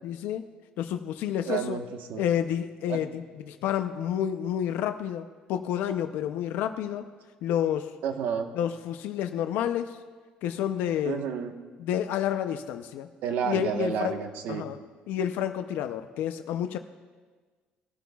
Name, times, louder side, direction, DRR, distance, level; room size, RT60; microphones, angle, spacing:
voice 1, 0.0-0.4 0.8-1.8 2.2-7.1 7.4-7.9 8.6-10.0 10.4-11.2 11.8-13.1 13.4-14.2 14.5-14.8 15.1-16.8, left 10 dB, 75° left, 7 dB, 0.6 m, -29 dB
voice 2, 1.4-2.2 2.9-3.2 8.0-8.5 11.0-11.5 13.2-14.7, right 7 dB, 70° right, 5 dB, 1.2 m, -31 dB
20.0 x 12.5 x 2.3 m, 1.4 s
cardioid pair, 170°, 3 cm